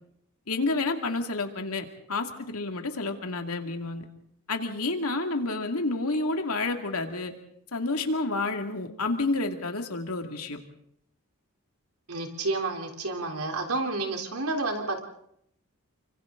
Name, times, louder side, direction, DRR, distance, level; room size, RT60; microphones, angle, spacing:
voice 1, 0.5-4.0 4.5-7.3 7.7-10.6, left 3 dB, 85° left, 5 dB, 2.5 m, -29 dB
voice 2, 12.1-15.0, right 3 dB, 85° right, 3 dB, 3.6 m, -30 dB
29.5 x 25.0 x 3.9 m, 0.72 s
head